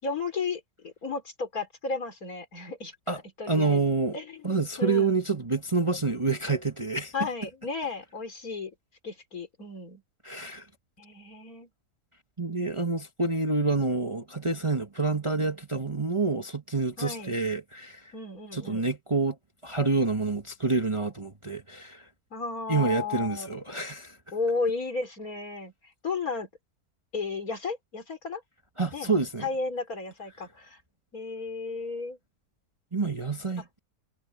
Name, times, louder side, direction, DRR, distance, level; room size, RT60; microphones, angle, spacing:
voice 1, 0.0-2.9 3.4-3.8 4.1-5.2 7.1-8.7 9.0-10.0 11.0-11.7 17.0-17.4 18.1-18.8 22.3-23.5 24.3-25.7 26.0-26.5 27.1-28.4 28.9-29.1 29.4-30.8 31.1-32.2 33.6-33.7, left 4 dB, 65° left, 4.3 m, -33 dB
voice 2, 3.5-4.2 4.4-7.1 10.2-10.7 12.4-18.1 18.5-19.4 19.6-22.1 22.7-24.2 28.8-29.5 32.9-33.6, right 3 dB, 20° right, 1.3 m, -27 dB
omnidirectional pair, 1.7 m